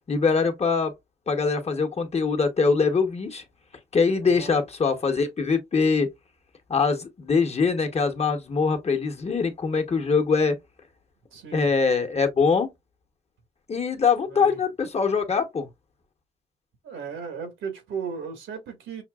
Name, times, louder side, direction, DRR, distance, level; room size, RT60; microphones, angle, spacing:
voice 1, 0.1-0.9 1.3-3.4 3.9-6.1 6.7-10.6 11.5-12.7 13.7-15.7, left 5 dB, 30° left, 1.1 m, -23 dB
voice 2, 4.2-4.6 11.3-11.7 14.3-14.6 16.8-19.0, right 6 dB, 75° right, 1.7 m, -36 dB
5.7 x 2.6 x 2.3 m
cardioid pair, 90°, 20 cm